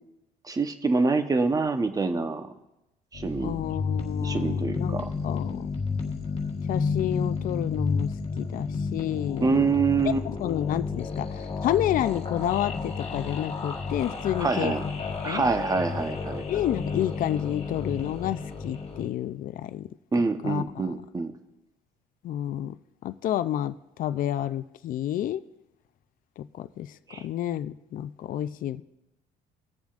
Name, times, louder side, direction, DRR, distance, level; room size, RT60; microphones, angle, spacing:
voice 1, 0.5-2.5 3.1-3.6 4.2-5.1 9.4-10.2 14.4-14.8 15.2-16.4 20.1-21.3 27.1-27.3, right 4 dB, 20° right, 0.9 m, -26 dB
sound 1, 3.1-19.1, left 4 dB, 35° left, 1.5 m, -31 dB
voice 2, 3.4-5.7 6.7-9.6 10.4-14.7 15.2-15.4 16.5-19.9 20.4-20.9 22.2-22.8 23.0-25.4 26.4-28.8, left 12 dB, 55° left, 0.4 m, -30 dB
21.0 x 7.1 x 2.5 m
cardioid pair, 110°, 17 cm